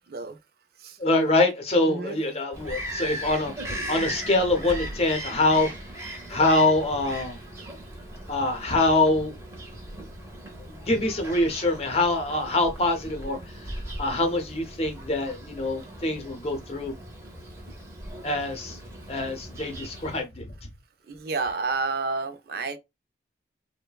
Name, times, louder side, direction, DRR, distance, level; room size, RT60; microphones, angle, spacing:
voice 1, 1.0-3.5 3.9-5.7 6.3-7.4 8.3-9.3 10.7-13.4 14.0-16.9 18.2-18.8 19.1-20.5, left 2 dB, 35° left, 0.7 m, -24 dB
voice 2, 1.8-2.2 21.1-22.8, right 4 dB, 55° right, 0.4 m, -30 dB
Bird vocalization bird call bird song, 2.5-20.2, right 1 dB, 15° right, 0.7 m, -38 dB
3.1 x 2.1 x 2.3 m
head